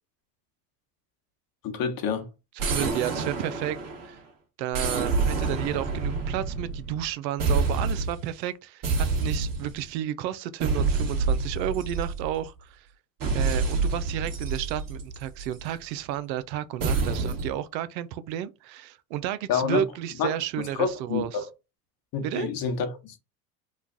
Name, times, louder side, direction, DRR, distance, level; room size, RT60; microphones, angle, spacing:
voice 1, 1.6-2.3 19.5-19.8 20.2-21.4 22.1-23.2, left 6 dB, 45° left, 1.0 m, -28 dB
sound 1, 2.6-4.2 4.7-7.1 7.4-8.2 8.8-9.9 10.6-12.5 13.2-15.6 16.8-17.6, right 4 dB, 40° right, 1.4 m, -27 dB
voice 2, 2.6-3.8 4.0-4.2 4.6-12.9 13.3-21.5 22.2-22.5, right 11 dB, 85° right, 0.6 m, -32 dB
3.2 x 2.2 x 3.7 m
hypercardioid pair, 90°, 50 cm